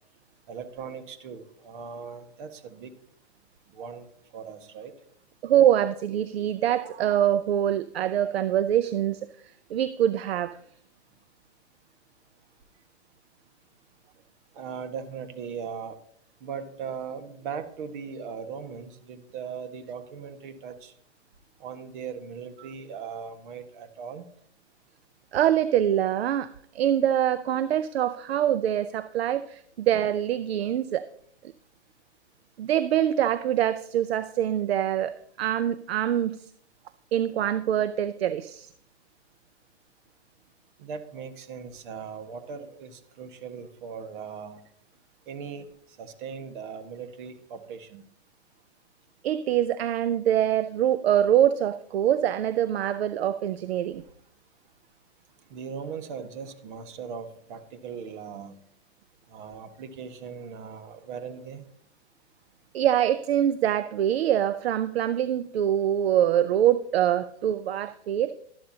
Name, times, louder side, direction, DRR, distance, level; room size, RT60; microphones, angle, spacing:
voice 1, 0.5-2.9 3.7-4.1 4.3-4.9 14.5-15.9 16.4-20.9 21.6-24.3 40.8-44.6 45.3-45.7 46.0-48.0 55.5-58.6 59.3-61.7, right 6 dB, 50° right, 8 dB, 1.6 m, -39 dB
voice 2, 5.4-9.3 9.7-10.6 25.3-31.0 32.6-36.5 37.1-38.7 49.2-54.0 62.7-68.3, right 11 dB, 65° right, 14 dB, 0.6 m, -24 dB
12.5 x 11.5 x 2.8 m, 0.66 s
hypercardioid pair, 135°, 33 cm